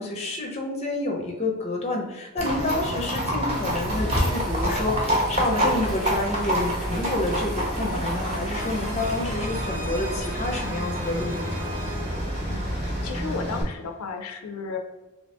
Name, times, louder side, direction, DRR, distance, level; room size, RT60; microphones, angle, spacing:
voice 1, 0.0-11.4, left 2 dB, 30° left, 1 dB, 0.5 m, -29 dB
Livestock farm animals working animals, 2.4-13.6, equal, 30° right, 0.8 m, -27 dB
sound 1, 3.5-9.4, left 1 dB, ahead, 0.9 m, -42 dB
sound 2, 8.5-14.1, right 1 dB, 65° right, 0.8 m, -40 dB
voice 2, 12.5-14.8, left 4 dB, 80° left, 4 dB, 0.4 m, -34 dB
3.1 x 2.6 x 3.2 m, 1.1 s
head